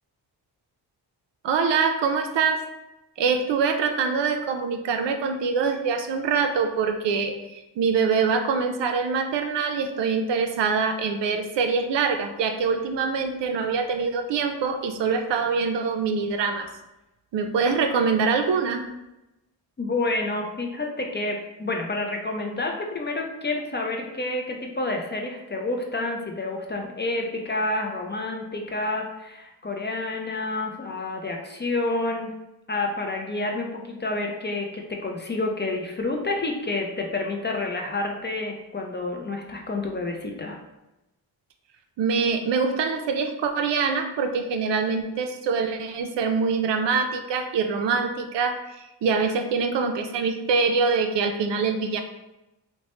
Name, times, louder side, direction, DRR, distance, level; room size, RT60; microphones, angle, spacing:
voice 1, 1.4-2.6 3.2-16.7 17.3-18.8 42.0-52.0, right 5 dB, 65° right, 6 dB, 0.5 m, -24 dB
voice 2, 19.8-32.3 32.7-40.6, left 2 dB, 25° left, 1 dB, 0.5 m, -29 dB
2.9 x 2.1 x 2.9 m, 0.95 s
cardioid pair, 55°, 46 cm